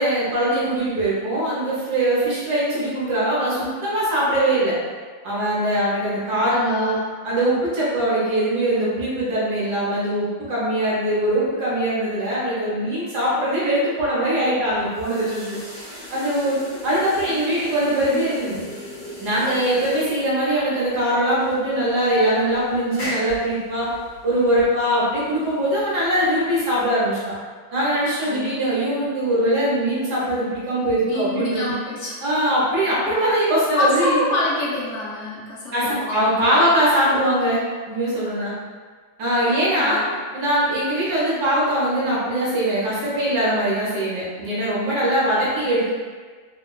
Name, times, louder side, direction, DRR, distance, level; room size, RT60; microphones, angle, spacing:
voice 1, 0.0-4.8 5.2-7.0 7.2-15.6 16.1-18.6 19.2-23.9 24.2-27.3 27.7-31.7 32.2-34.2 35.7-38.5 39.2-40.0 40.3-45.9, right 1 dB, 65° right, -7 dB, 1.3 m, -22 dB
voice 2, 6.4-7.0 18.0-18.3 27.9-28.6 31.0-32.2 32.8-33.2 33.7-36.7 39.5-40.1, left 2 dB, 70° left, -6 dB, 0.6 m, -27 dB
sound 1, 14.6-27.1, left 1 dB, 50° left, 1.8 m, -38 dB
3.5 x 2.2 x 2.2 m, 1.5 s
omnidirectional pair, 2.0 m